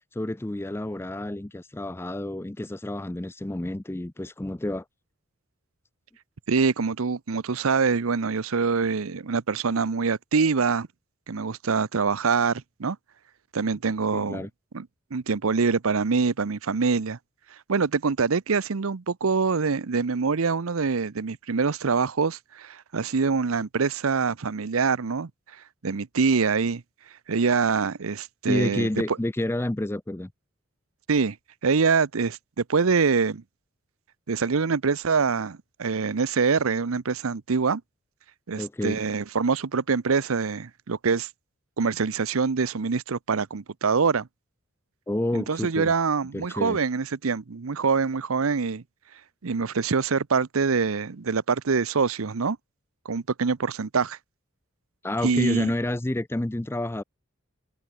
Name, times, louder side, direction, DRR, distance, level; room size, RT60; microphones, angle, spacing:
voice 1, 0.1-4.8 14.1-14.5 28.5-30.3 38.6-39.0 45.1-45.9 46.3-46.8 55.0-57.0, left 1 dB, 10° left, 0.4 m, -29 dB
voice 2, 6.5-10.9 11.3-13.0 13.5-14.5 14.7-14.9 15.1-17.2 17.7-25.3 25.8-26.8 27.3-29.2 31.1-31.4 31.6-33.4 34.3-37.8 38.5-41.3 41.8-44.3 45.3-48.8 49.4-52.6 53.0-54.2 55.2-55.7, right 5 dB, 85° right, 0.7 m, -25 dB
head